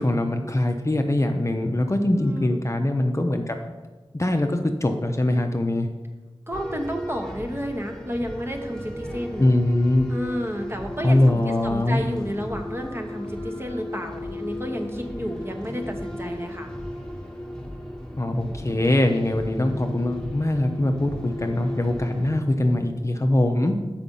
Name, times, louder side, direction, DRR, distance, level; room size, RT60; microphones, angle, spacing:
voice 1, 0.0-3.6 4.1-5.9 9.4-10.1 11.0-12.0 18.2-23.7, left 1 dB, 30° left, 4 dB, 0.6 m, -22 dB
voice 2, 2.2-2.6 6.5-9.4 10.1-16.7, equal, 25° right, 3 dB, 1.0 m, -31 dB
sound 1, 6.5-22.3, left 1 dB, 5° left, 1.2 m, -36 dB
6.9 x 5.0 x 5.3 m, 1.2 s
wide cardioid pair, 60°, 10 cm